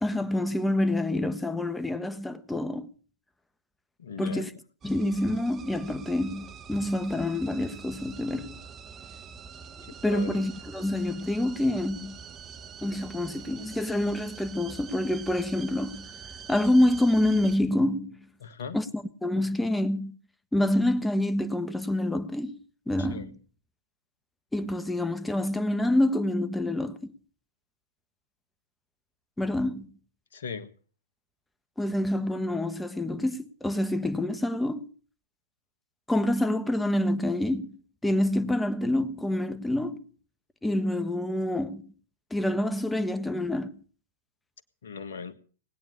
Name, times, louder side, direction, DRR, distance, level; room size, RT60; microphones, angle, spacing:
voice 1, 0.0-2.9 4.2-4.5 4.8-8.6 10.0-12.2 12.8-16.1 16.5-18.2 18.7-20.2 20.5-22.6 22.9-23.4 24.5-27.1 29.4-29.9 31.8-34.9 36.1-40.0 40.6-41.9 42.3-43.8, left 1 dB, 5° left, 1.4 m, -27 dB
voice 2, 4.0-4.4 10.1-10.4 18.4-18.8 23.0-23.3 30.3-30.7 44.8-45.3, left 6 dB, 70° left, 1.7 m, -38 dB
sound 1, 4.8-17.6, right 6 dB, 25° right, 1.2 m, -45 dB
19.5 x 9.2 x 6.9 m
figure-of-eight pair, 105°, 0 cm